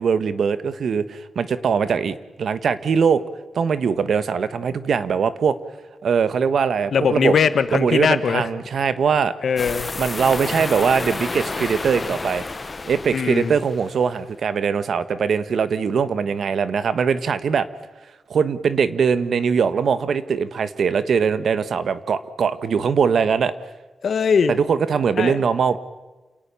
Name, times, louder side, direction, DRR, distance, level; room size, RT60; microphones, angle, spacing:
voice 1, 0.0-3.2 3.5-5.5 6.0-7.3 7.7-9.3 10.0-12.4 12.9-17.7 18.3-23.5 24.5-25.8, right 6 dB, 60° right, 13 dB, 1.3 m, -21 dB
voice 2, 6.9-8.5 9.4-9.9 13.1-13.5 24.0-24.5 25.2-25.4, left 6 dB, 60° left, 11 dB, 1.5 m, -20 dB
sound 1, 9.6-14.0, left 3 dB, 25° left, 0.7 m, -30 dB
28.5 x 18.0 x 7.1 m, 1.2 s
wide cardioid pair, 160°, 0 cm